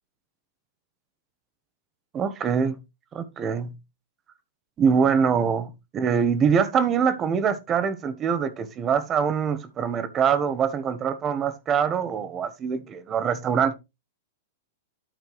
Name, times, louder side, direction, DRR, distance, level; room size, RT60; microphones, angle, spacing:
voice 1, 2.1-2.8 3.1-3.7 4.8-13.7, right 7 dB, 20° right, 1.0 m, -24 dB
12.5 x 4.3 x 3.1 m
supercardioid pair, 160°, 0 cm